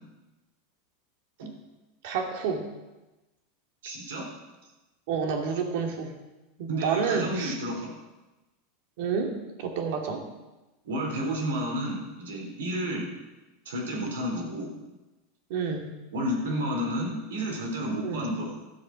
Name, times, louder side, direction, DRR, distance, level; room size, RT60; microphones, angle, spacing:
voice 1, 2.0-2.7 5.1-6.1 6.6-7.6 9.0-9.3 9.6-10.3 15.5-15.9 18.0-18.3, right 5 dB, 65° right, 2 dB, 2.5 m, -29 dB
voice 2, 3.8-4.3 6.7-7.9 10.8-13.1 13.7-14.7 16.1-18.5, equal, 90° right, 0 dB, 4.3 m, -31 dB
14.0 x 7.8 x 6.3 m, 1.1 s
supercardioid pair, 125°, 0 cm